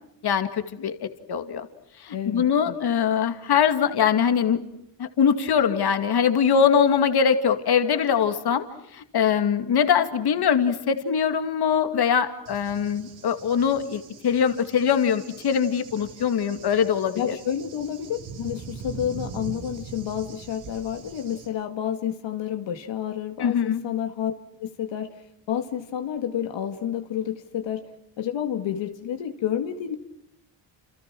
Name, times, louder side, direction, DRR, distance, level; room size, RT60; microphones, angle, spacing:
voice 1, 0.2-1.7 2.0-4.6 5.0-8.6 8.9-17.4 23.4-23.8, left 7 dB, 55° left, 8 dB, 2.4 m, -22 dB
voice 2, 2.1-2.7 17.2-24.3 24.6-25.2 25.5-27.8 28.2-30.0, left 9 dB, 70° left, 5 dB, 2.2 m, -30 dB
Cricket / Thunder, 12.5-21.5, right 5 dB, 90° right, 5.8 m, -42 dB
30.0 x 28.5 x 6.2 m, 0.76 s
cardioid pair, 105°, 45 cm